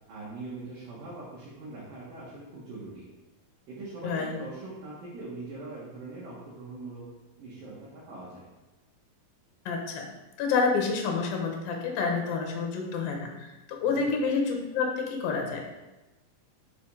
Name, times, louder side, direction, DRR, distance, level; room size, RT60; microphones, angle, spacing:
voice 1, 0.1-3.0 3.7-7.0 7.4-8.4 13.8-14.1, right 2 dB, 65° right, -7 dB, 3.1 m, -42 dB
voice 2, 4.0-4.4 9.7-10.1 10.4-15.6, left 4 dB, 70° left, 2 dB, 2.9 m, -28 dB
6.9 x 6.8 x 4.8 m, 1.1 s
omnidirectional pair, 4.5 m